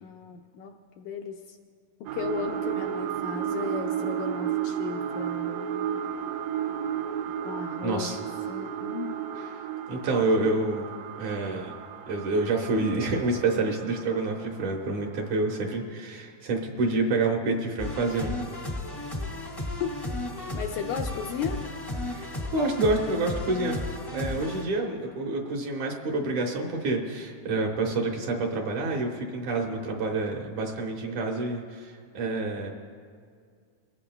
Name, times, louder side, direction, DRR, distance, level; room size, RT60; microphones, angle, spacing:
voice 1, 0.0-1.6 2.1-5.6 7.4-9.2 19.8-19.9 20.5-21.6, left 7 dB, 80° left, 3 dB, 1.9 m, -35 dB
sound 1, 2.1-15.2 15.7-15.8, right 9 dB, 90° right, 2.4 m, -33 dB
voice 2, 7.8-8.2 9.3-9.6 9.9-10.9 11.2-11.7 12.1-18.4 22.1-23.8 24.1-32.7, right 3 dB, 65° right, 1 dB, 2.4 m, -28 dB
sound 2, 17.8-24.6, left 2 dB, 15° left, 0.7 m, -34 dB
22.5 x 16.5 x 2.3 m, 2.1 s
omnidirectional pair, 3.9 m